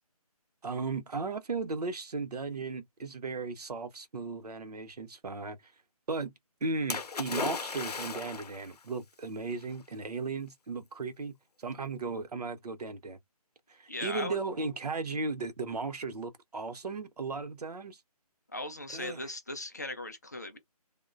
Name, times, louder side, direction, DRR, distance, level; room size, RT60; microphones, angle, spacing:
voice 1, 0.6-5.7 6.1-6.3 6.6-13.2 13.7-18.0 18.9-19.3, right 4 dB, 80° right, 0.7 m, -36 dB
Splash splatter, 6.9-8.7 9.6-9.7, left 5 dB, 80° left, 0.6 m, -35 dB
voice 2, 13.9-14.4 18.5-20.6, left 2 dB, 25° left, 0.4 m, -38 dB
3.0 x 2.1 x 2.4 m
figure-of-eight pair, 160°, 20 cm